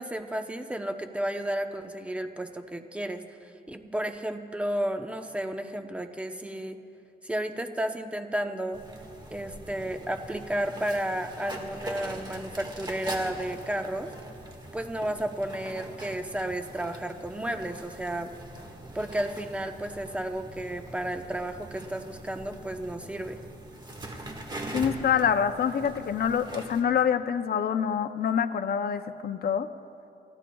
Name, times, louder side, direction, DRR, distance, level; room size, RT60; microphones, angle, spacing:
voice 1, 0.0-6.8 7.2-8.8 9.3-14.1 14.7-18.3 18.9-23.4, right 1 dB, 5° right, 6 dB, 0.8 m, -32 dB
sound 1, 8.7-26.8, right 1 dB, 25° right, 1.6 m, -42 dB
voice 2, 24.7-29.7, left 8 dB, 65° left, 8 dB, 0.6 m, -26 dB
29.5 x 15.5 x 2.3 m, 2.7 s
wide cardioid pair, 110°, 18 cm